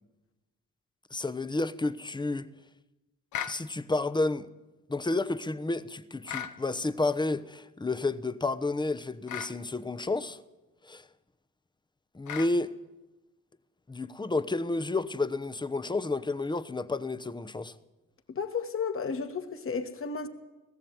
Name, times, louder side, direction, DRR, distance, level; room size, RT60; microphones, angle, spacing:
voice 1, 1.1-2.5 3.5-4.5 4.9-10.4 10.8-11.0 12.1-12.7 13.9-17.7, left 2 dB, 15° left, 1.0 m, -31 dB
sound 1, 3.3-3.6 6.3-6.6 9.3-9.6 12.3-12.6, left 9 dB, 75° left, 1.3 m, -36 dB
voice 2, 18.3-20.3, left 5 dB, 45° left, 2.3 m, -33 dB
19.0 x 15.0 x 9.3 m
cardioid pair, 90°, 30 cm